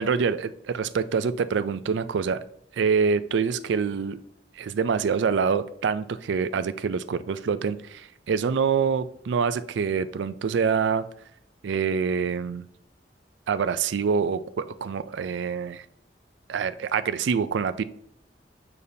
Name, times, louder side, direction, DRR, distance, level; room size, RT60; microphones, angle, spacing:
voice 1, 0.0-2.4 2.7-4.2 4.6-11.0 11.6-12.7 13.5-15.9 16.5-17.8, right 6 dB, 75° right, 13 dB, 0.4 m, -26 dB
6.7 x 5.4 x 2.7 m, 0.70 s
head